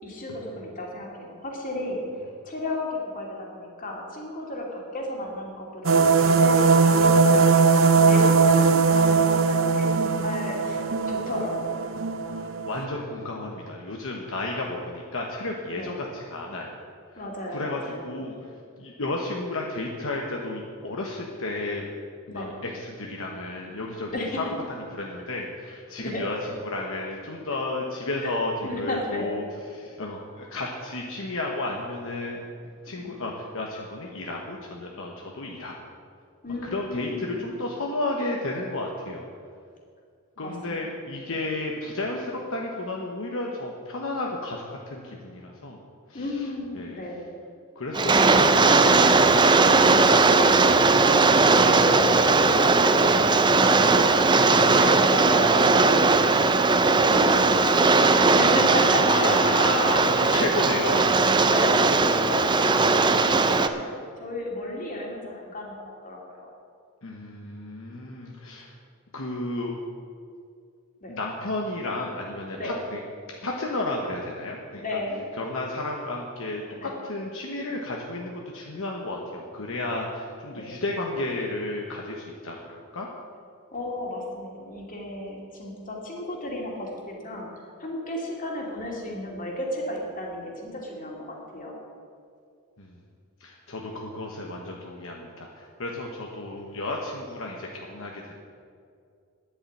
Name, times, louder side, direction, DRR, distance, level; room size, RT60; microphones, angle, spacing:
voice 1, 0.0-7.7 8.0-11.8 15.7-15.9 17.2-18.2 22.3-22.5 24.1-24.4 26.0-26.2 28.2-28.3 28.6-29.3 33.0-33.2 36.4-37.4 40.4-40.9 41.3-41.4 46.1-47.3 49.6-50.8 51.5-59.7 60.2-60.5 61.2-63.9 64.2-66.5 67.9-68.0 71.0-71.1 72.5-72.7 74.8-75.2 76.8-76.9 80.5-80.8 83.7-87.5 87.8-91.7, left 1 dB, 40° left, -1 dB, 2.7 m, -34 dB
sound 1, 5.8-12.8, right 4 dB, 60° right, 0.7 m, -20 dB
voice 2, 12.4-16.8 17.5-18.3 18.8-21.9 22.3-26.4 26.6-29.5 29.7-32.5 32.8-35.7 36.7-39.2 40.4-45.8 46.1-46.5 46.7-47.0 47.7-49.2 58.9-61.1 67.0-68.7 69.1-69.7 71.1-73.0 73.4-74.8 75.4-76.6 77.0-83.1 92.8-92.9 93.4-98.3, left 2 dB, 65° left, 0 dB, 1.3 m, -32 dB
Rain, 47.9-63.7, right 3 dB, 20° right, 0.5 m, -19 dB
10.5 x 8.8 x 8.6 m, 2.3 s
head